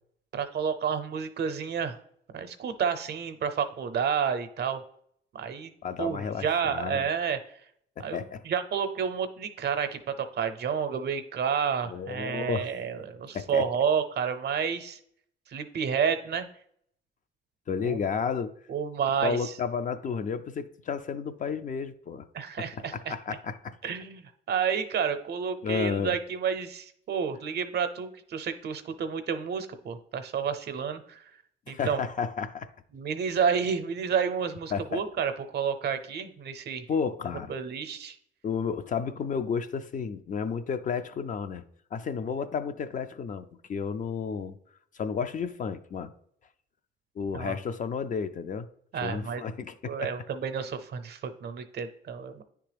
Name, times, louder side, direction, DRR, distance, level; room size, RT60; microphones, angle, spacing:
voice 1, 0.3-2.0 2.3-4.8 5.3-5.7 6.0-7.4 8.0-15.0 15.5-16.5 17.8-18.0 18.7-19.5 22.3-23.1 23.8-31.2 31.7-32.0 32.9-36.9 37.5-38.2 47.3-47.5 48.9-49.4 49.8-52.4, right 7 dB, 55° right, 0.6 m, -30 dB
voice 2, 5.8-7.1 8.0-8.4 11.9-12.7 13.3-13.7 17.7-18.5 19.2-22.3 22.6-23.9 25.6-26.2 31.7-32.7 34.7-35.0 36.9-37.5 38.4-41.6 41.9-44.6 44.9-46.1 47.2-48.7 49.0-50.1, left 6 dB, 40° left, 0.4 m, -32 dB
9.7 x 3.4 x 3.3 m
cardioid pair, 90°, 20 cm